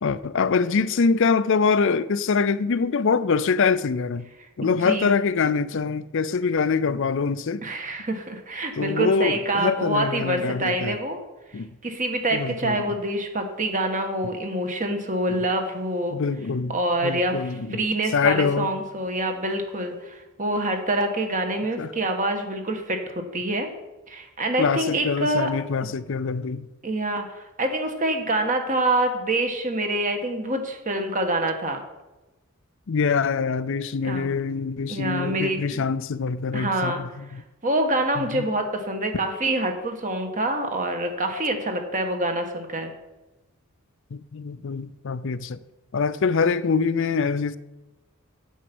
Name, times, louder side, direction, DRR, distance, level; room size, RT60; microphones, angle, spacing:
voice 1, 0.0-4.3 4.6-7.7 8.8-11.0 11.5-11.7 12.3-13.0 16.1-16.7 17.0-17.8 18.1-18.7 21.8-21.9 24.6-26.7 32.9-37.4 38.2-38.5 41.3-41.4 44.1-45.6 45.9-47.6, left 5 dB, 60° left, 0.5 m, -24 dB
voice 2, 4.6-5.1 7.6-11.2 11.8-16.2 16.7-23.7 24.1-25.5 26.8-31.8 34.0-34.3 34.9-35.8 36.5-37.0 37.6-42.9, right 1 dB, 35° right, 1.5 m, -26 dB
9.2 x 8.1 x 6.1 m
head